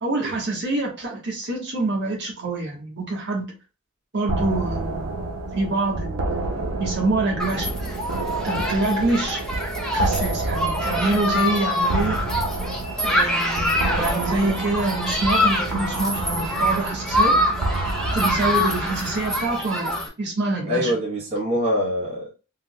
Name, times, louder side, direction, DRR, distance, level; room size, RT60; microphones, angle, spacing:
voice 1, 0.0-3.5 4.1-5.1 5.5-6.2 6.8-7.7 8.4-9.4 9.9-12.2 13.1-17.3 18.1-20.9, right 2 dB, 55° right, 1.3 m, -26 dB
sound 1, 4.3-19.5, right 2 dB, 90° right, 0.7 m, -29 dB
Human group actions, 7.4-20.1, left 1 dB, 5° left, 0.7 m, -25 dB
voice 2, 20.7-22.3, equal, 30° right, 1.0 m, -24 dB
3.8 x 2.9 x 2.2 m
head